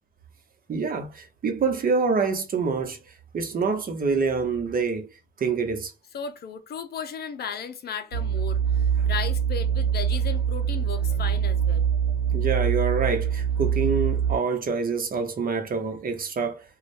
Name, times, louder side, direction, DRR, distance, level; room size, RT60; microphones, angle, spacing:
voice 1, 0.7-3.0 3.3-5.1 5.4-5.9 12.3-16.6, right 5 dB, 45° right, 0.9 m, -26 dB
voice 2, 6.1-11.9, left 7 dB, 55° left, 0.6 m, -35 dB
sound 1, 8.1-14.4, right 8 dB, 85° right, 1.0 m, -24 dB
2.6 x 2.3 x 3.2 m
cardioid pair, 90°, 20 cm